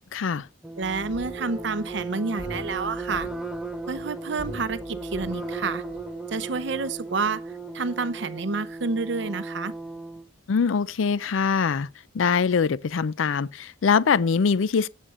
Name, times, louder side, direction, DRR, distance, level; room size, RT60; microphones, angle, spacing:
voice 1, 0.1-0.5 10.5-11.9 12.1-14.9, left 5 dB, 75° left, 0.4 m, -23 dB
sound 1, 0.6-10.3, right 3 dB, 5° right, 0.7 m, -36 dB
sound 2, 0.8-8.5 8.7-8.8, equal, 25° right, 6.1 m, -44 dB
voice 2, 0.8-3.3 3.9-5.8 6.3-9.7, right 4 dB, 60° right, 0.7 m, -29 dB
17.5 x 7.5 x 2.5 m
head